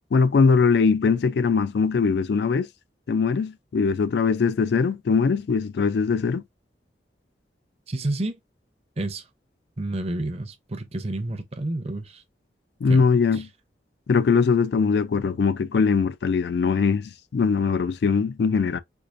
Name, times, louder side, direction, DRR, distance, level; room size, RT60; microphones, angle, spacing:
voice 1, 0.1-2.7 3.1-6.4 12.8-13.5 14.1-18.8, left 5 dB, 65° left, 0.3 m, -21 dB
voice 2, 7.9-8.4 9.0-9.2 9.8-12.2 12.9-13.1 13.3-13.4, right 2 dB, 35° right, 0.6 m, -30 dB
4.6 x 2.5 x 2.4 m
head